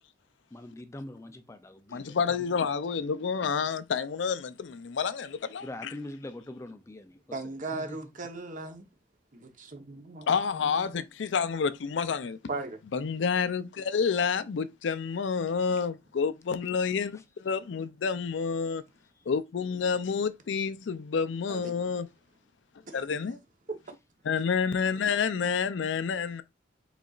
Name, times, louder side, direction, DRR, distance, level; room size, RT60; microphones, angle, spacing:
voice 1, 0.5-2.4 5.6-8.1 17.1-17.2 19.2-19.3, left 1 dB, 15° left, 0.4 m, -43 dB
voice 2, 1.9-5.7 10.3-12.4 12.9-18.8 19.3-22.1 22.9-23.4 24.2-26.4, left 6 dB, 75° left, 0.4 m, -29 dB
voice 3, 7.3-8.9 9.3-10.9 12.5-12.8 21.5-21.7 22.9-23.0, right 3 dB, 45° right, 0.9 m, -38 dB
5.1 x 4.0 x 2.4 m
head